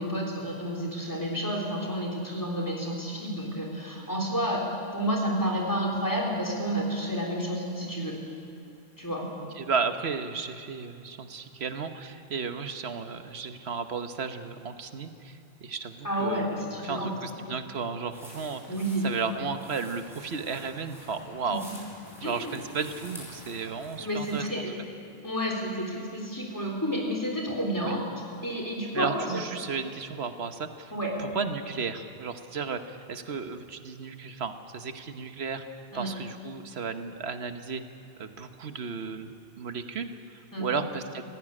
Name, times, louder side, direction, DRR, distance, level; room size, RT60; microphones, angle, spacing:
voice 1, 0.0-4.6 4.9-8.2 9.0-9.3 16.0-17.1 18.7-19.1 21.5-21.6 22.2-22.5 24.0-24.7 25.2-28.0 28.4-29.1 30.9-31.1 35.9-36.1 40.5-40.7, equal, 20° left, 0 dB, 3.5 m, -30 dB
voice 2, 9.4-16.5 16.8-18.6 19.0-21.7 22.2-24.5 27.8-27.9 28.9-30.9 31.2-37.8 38.2-41.2, right 5 dB, 80° right, 8 dB, 1.3 m, -34 dB
sound 1, 18.1-24.6, left 1 dB, ahead, 5.3 m, -48 dB
17.0 x 15.5 x 9.9 m, 2.7 s
omnidirectional pair, 1.1 m